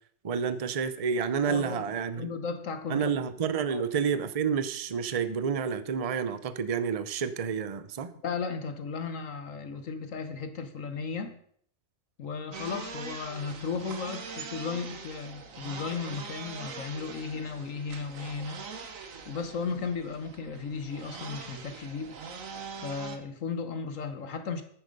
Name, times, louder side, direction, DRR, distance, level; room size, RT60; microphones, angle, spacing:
voice 1, 0.2-2.3 2.9-8.1, right 6 dB, 35° right, 13 dB, 0.6 m, -29 dB
voice 2, 1.4-3.1 3.7-3.8 8.2-11.4 12.2-18.6 19.3-22.1 22.8-24.6, left 5 dB, 65° left, 9 dB, 1.4 m, -35 dB
sound 1, 12.5-23.2, right 5 dB, 65° right, 1.6 m, -42 dB
10.0 x 9.4 x 5.3 m, 0.63 s
omnidirectional pair, 1.5 m